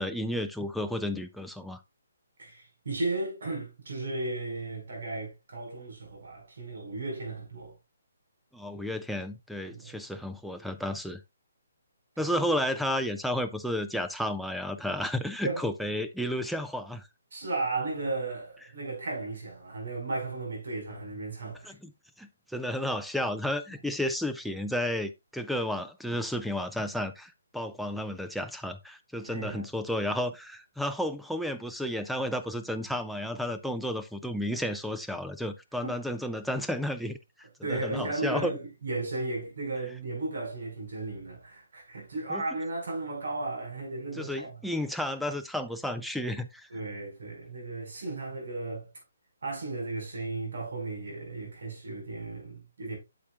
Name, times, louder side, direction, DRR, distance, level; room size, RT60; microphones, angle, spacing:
voice 1, 0.0-1.8 8.5-11.2 12.2-17.1 21.6-21.9 22.2-37.2 37.7-38.5 42.3-42.4 44.2-46.7, left 1 dB, ahead, 0.3 m, -32 dB
voice 2, 2.4-7.7 9.7-10.0 12.1-12.3 15.4-15.6 17.3-21.7 29.2-29.6 35.8-35.9 37.6-44.6 46.7-48.9 49.4-53.0, right 2 dB, 70° right, 5.0 m, -35 dB
8.5 x 7.0 x 2.4 m
hypercardioid pair, 170°, 0 cm